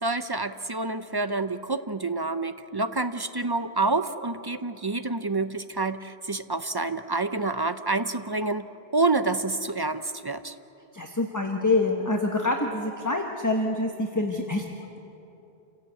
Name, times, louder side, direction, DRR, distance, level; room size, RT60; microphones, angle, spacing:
voice 1, 0.0-8.7 8.9-10.6, right 3 dB, 30° right, 10 dB, 0.5 m, -28 dB
voice 2, 10.9-15.0, left 2 dB, 15° left, 1 dB, 1.2 m, -26 dB
28.5 x 16.5 x 8.2 m, 2.9 s
omnidirectional pair, 1.1 m